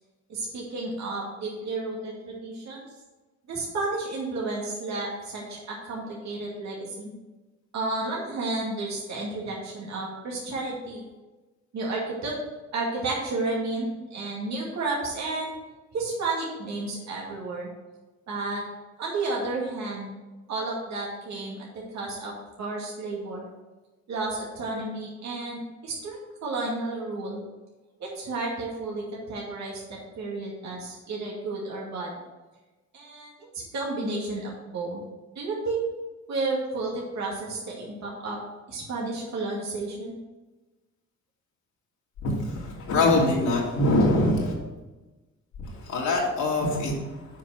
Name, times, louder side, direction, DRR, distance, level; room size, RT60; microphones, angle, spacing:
voice 1, 0.3-2.8 3.5-7.1 7.7-11.0 11.7-12.4 12.7-15.5 15.9-17.7 18.3-18.6 19.0-20.1 20.5-22.3 22.6-23.5 24.1-27.4 28.0-32.1 32.9-35.0 35.3-35.8 36.3-38.4 38.7-40.2, right 2 dB, 65° right, -4 dB, 2.3 m, -32 dB
voice 2, 42.2-44.5 45.8-47.0, left 2 dB, 75° left, -3 dB, 2.7 m, -23 dB
7.2 x 5.1 x 6.4 m, 1.2 s
cardioid pair, 90°, 30 cm